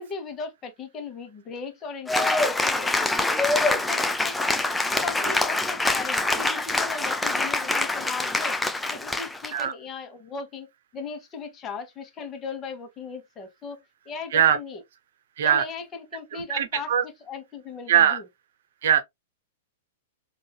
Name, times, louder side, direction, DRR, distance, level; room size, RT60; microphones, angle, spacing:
voice 1, 0.0-3.3 3.6-4.5 4.9-8.6 8.9-13.8 14.1-14.8 15.4-16.9 17.3-18.2, left 5 dB, 25° left, 1.1 m, -37 dB
Cheering / Applause, 2.1-9.6, left 2 dB, 5° left, 0.4 m, -25 dB
voice 2, 16.3-17.0 17.9-18.2 18.8-19.0, right 9 dB, 65° right, 0.8 m, -21 dB
3.8 x 2.5 x 2.2 m
hypercardioid pair, 110°, 0 cm